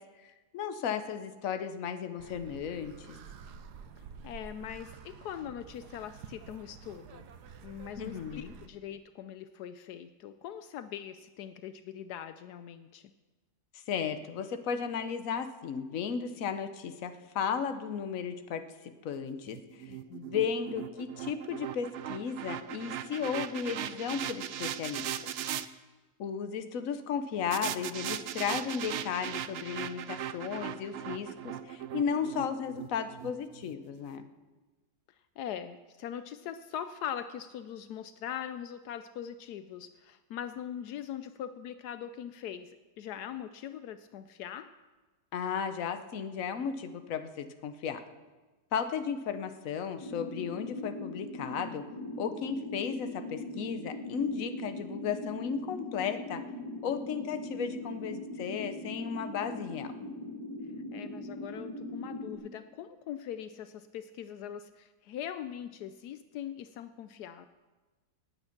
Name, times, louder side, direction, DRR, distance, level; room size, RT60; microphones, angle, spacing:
voice 1, 0.2-3.2 8.0-8.5 13.7-19.9 20.3-25.3 26.2-34.3 45.3-48.0 48.7-51.8 52.2-56.4 56.8-59.9, left 7 dB, 60° left, 9 dB, 1.2 m, -35 dB
sound 1, 2.2-8.7, right 6 dB, 85° right, 1.5 m, -49 dB
voice 2, 4.2-7.3 7.6-13.1 19.9-20.5 35.4-44.8 60.9-67.5, left 9 dB, 80° left, 11 dB, 1.2 m, -41 dB
sound 2, 19.5-25.7 27.5-33.7, right 10 dB, 65° right, 0.7 m, -38 dB
sound 3, 50.0-62.4, left 1 dB, 15° left, 3.1 m, -40 dB
18.5 x 8.9 x 5.9 m, 1.2 s
omnidirectional pair, 1.7 m